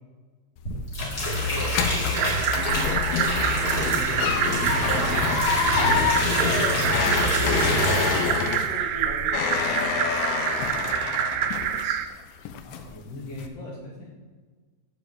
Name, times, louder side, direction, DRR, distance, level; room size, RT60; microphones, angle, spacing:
sound 1, 0.6-12.1 12.5-13.0 13.4-13.5, left 7 dB, 85° left, 3.0 m, -28 dB
sound 2, 0.6-8.7 9.0-9.3, left 1 dB, 30° left, 1.9 m, -26 dB
voice 1, 1.1-1.7 3.3-5.3 5.7-6.1 6.7-7.2 12.6-14.1, left 2 dB, 55° left, -4 dB, 2.8 m, -39 dB
sound 3, 2.1-12.1, right 10 dB, 85° right, 2.8 m, -27 dB
voice 2, 8.0-12.0, equal, 55° right, -4 dB, 1.7 m, -41 dB
7.1 x 6.5 x 7.6 m, 1.4 s
omnidirectional pair, 5.6 m